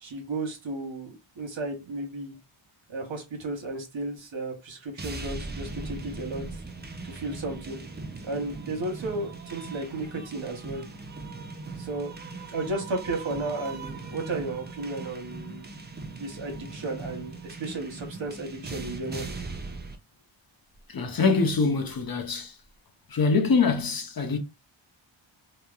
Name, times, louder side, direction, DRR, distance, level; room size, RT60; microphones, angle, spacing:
voice 1, 0.0-2.4 2.9-6.4 7.0-7.8 8.2-10.8 11.8-12.1 12.5-15.7 15.9-19.3, right 2 dB, 65° right, 0.9 m, -34 dB
sound 1, 5.0-20.0, right 3 dB, 25° right, 0.3 m, -39 dB
voice 2, 20.9-22.6 23.1-24.4, left 4 dB, 45° left, 0.5 m, -24 dB
2.9 x 2.1 x 2.3 m
wide cardioid pair, 85°, 49 cm